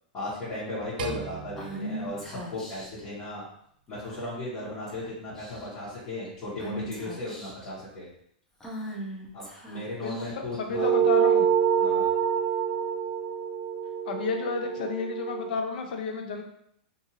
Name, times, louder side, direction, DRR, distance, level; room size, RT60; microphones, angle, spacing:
voice 1, 0.1-3.4 3.9-8.1 9.3-10.9 11.8-12.1, left 1 dB, 25° left, -11 dB, 1.2 m, -36 dB
sound 1, 1.0-3.4, right 7 dB, 80° right, 0.4 m, -41 dB
Female speech woman speaking / Whispering, 1.6-3.0 4.0-4.5 4.9-5.0 5.3-5.8 6.6-7.7 8.6-10.6, equal, 10° left, 0.5 m, -39 dB
voice 2, 10.0-11.5 11.8-12.0 14.1-16.4, left 5 dB, 65° left, 4 dB, 0.5 m, -32 dB
sound 2, 10.7-15.5, right 8 dB, 35° right, 0.8 m, -26 dB
2.6 x 2.6 x 2.8 m, 0.70 s
supercardioid pair, 155°, 5 cm